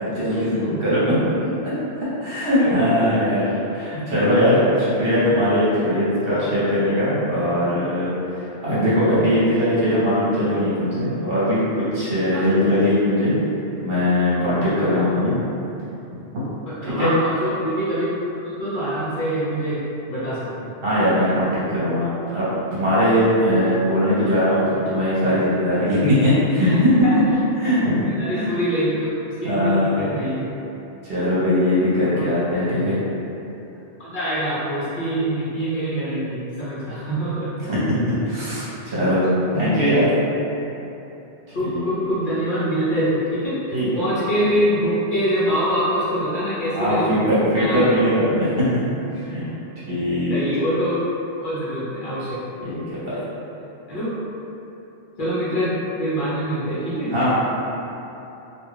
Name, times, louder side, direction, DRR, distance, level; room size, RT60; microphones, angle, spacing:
voice 1, 0.1-1.7 2.2-8.1 8.6-13.3 13.8-15.3 16.1-16.4 16.8-17.1 20.8-26.7 27.6-28.0 28.3-28.5 29.4-30.1 31.1-32.9 37.6-39.3 39.5-40.1 41.5-41.8 43.7-43.9 46.8-48.7 49.3-49.4 49.9-50.3 52.6-53.2 57.1-57.3, equal, 60° right, -11 dB, 1.0 m, -20 dB
voice 2, 2.6-3.2 12.3-12.5 14.8-15.0 16.7-18.1 18.3-19.8 20.1-20.7 21.3-21.4 26.7-27.2 27.6-27.8 28.1-30.5 32.1-32.3 34.0-37.5 41.5-47.1 47.6-48.0 50.3-51.0 51.4-52.4 53.9-54.2 55.2-55.7 56.0-57.1, equal, 55° left, -10 dB, 0.8 m, -25 dB
2.3 x 2.3 x 3.2 m, 3.0 s
omnidirectional pair, 1.2 m